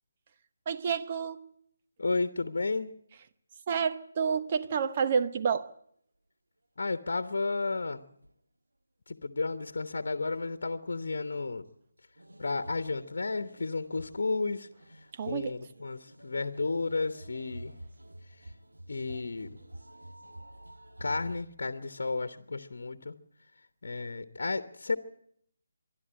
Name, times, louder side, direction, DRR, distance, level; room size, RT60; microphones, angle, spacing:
voice 1, 0.7-1.5 3.7-5.7 15.1-15.5, right 6 dB, 35° right, 1.0 m, -29 dB
voice 2, 2.0-3.0 6.8-8.0 9.1-11.6 12.4-14.7 15.2-17.7 18.9-19.6 21.0-23.2 23.8-25.0, left 3 dB, 60° left, 1.2 m, -32 dB
sound 1, 8.2-8.3 9.8-10.1 10.4-10.5 12.2-21.4, right 1 dB, 80° right, 1.5 m, -49 dB
24.5 x 12.0 x 8.9 m
figure-of-eight pair, 150°, 0 cm